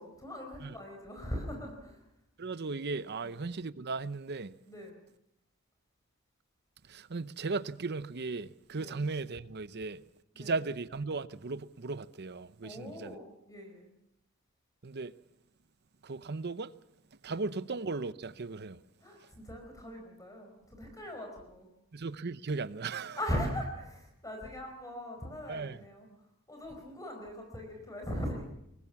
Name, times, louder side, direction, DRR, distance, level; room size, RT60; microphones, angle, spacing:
voice 1, 0.0-2.0 3.1-3.3 4.7-5.0 8.8-9.0 10.3-10.6 12.6-13.9 17.3-17.4 19.0-21.7 23.2-26.1 26.5-28.5, equal, 15° left, 4.6 m, -40 dB
voice 2, 2.4-4.5 6.9-10.0 10.4-13.2 14.8-15.1 16.0-16.7 17.2-18.8 21.9-23.2 25.5-25.8, right 3 dB, 50° right, 0.8 m, -36 dB
23.0 x 19.0 x 7.1 m
head